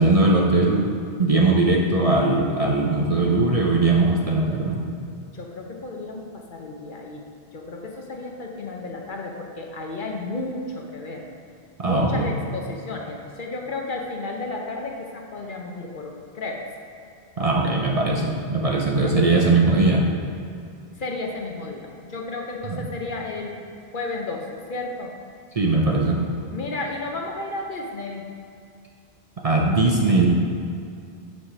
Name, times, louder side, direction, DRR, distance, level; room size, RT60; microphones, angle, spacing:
voice 1, 0.0-4.8 11.8-12.3 17.4-20.1 22.7-22.8 25.5-26.2 29.4-30.3, right 2 dB, 40° right, -1 dB, 0.7 m, -20 dB
voice 2, 5.3-7.3 7.5-11.2 11.8-16.6 19.0-19.2 20.9-23.5 23.9-25.1 26.5-28.2, left 2 dB, 55° left, 1 dB, 0.9 m, -33 dB
6.3 x 4.9 x 5.9 m, 2.4 s
omnidirectional pair, 1.1 m